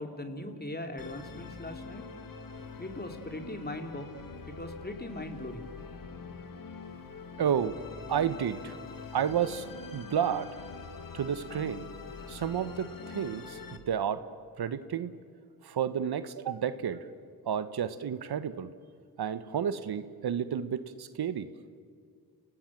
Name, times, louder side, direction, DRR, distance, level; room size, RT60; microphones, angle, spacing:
voice 1, 0.0-2.0 2.8-4.1 4.4-5.7, left 1 dB, 25° left, 5 dB, 3.3 m, -40 dB
Musical instrument, 1.0-13.8, left 5 dB, 55° left, 2.1 m, -44 dB
voice 2, 7.4-7.8 8.1-8.8 9.1-10.5 11.1-11.8 12.3-14.2 14.6-15.1 15.6-17.1 17.5-18.7 19.2-21.5, right 8 dB, 75° right, 13 dB, 1.2 m, -31 dB
29.0 x 19.0 x 7.5 m, 2.1 s
supercardioid pair, 45°, 39 cm